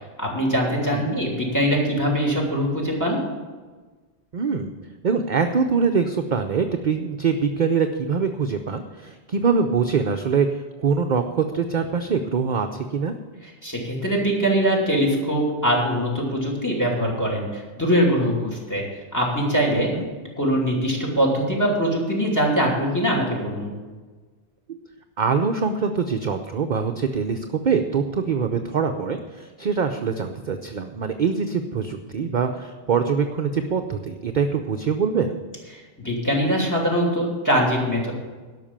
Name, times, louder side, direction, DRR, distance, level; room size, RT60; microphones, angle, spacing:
voice 1, 0.2-3.2 13.6-18.8 19.1-19.9 20.4-23.7 36.0-38.1, equal, 15° left, -1 dB, 2.9 m, -22 dB
voice 2, 4.3-4.7 5.0-13.1 19.8-20.0 24.7-24.8 25.2-35.4, right 5 dB, 50° right, 6 dB, 0.7 m, -24 dB
12.5 x 5.9 x 8.7 m, 1.3 s
omnidirectional pair, 1.2 m